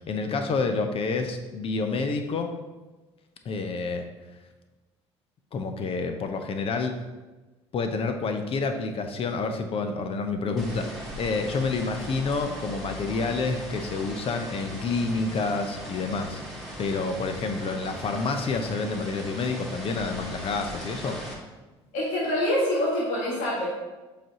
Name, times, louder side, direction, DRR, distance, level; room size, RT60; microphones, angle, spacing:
voice 1, 0.1-2.5 3.4-4.0 5.5-6.9 7.7-21.2, left 4 dB, 40° left, 6 dB, 0.8 m, -28 dB
sound 1, 10.6-21.3, equal, ahead, 2.1 m, -39 dB
voice 2, 21.9-23.7, left 1 dB, 60° left, -5 dB, 1.9 m, -25 dB
7.5 x 5.1 x 2.9 m, 1.2 s
figure-of-eight pair, 60°, 14 cm